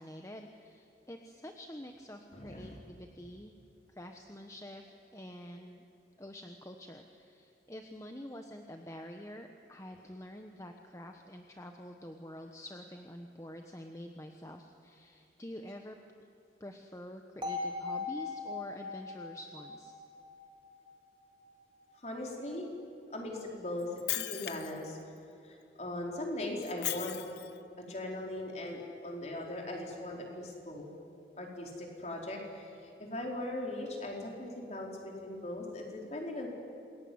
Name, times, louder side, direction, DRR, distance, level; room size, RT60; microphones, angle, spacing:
voice 1, 0.0-3.5 3.9-5.8 6.2-16.0 16.6-19.9, equal, 15° left, 4 dB, 1.2 m, -47 dB
voice 2, 2.3-2.8 21.9-22.7 23.1-25.0 25.4-27.2 27.8-30.9 31.4-36.5, left 1 dB, 40° left, 0 dB, 4.8 m, -39 dB
sound 1, 17.4-21.4, left 3 dB, 25° right, 3.5 m, -40 dB
Shatter, 23.8-24.8 26.6-27.6, left 14 dB, 70° left, 1.0 m, -37 dB
27.5 x 22.0 x 9.7 m, 2.7 s
head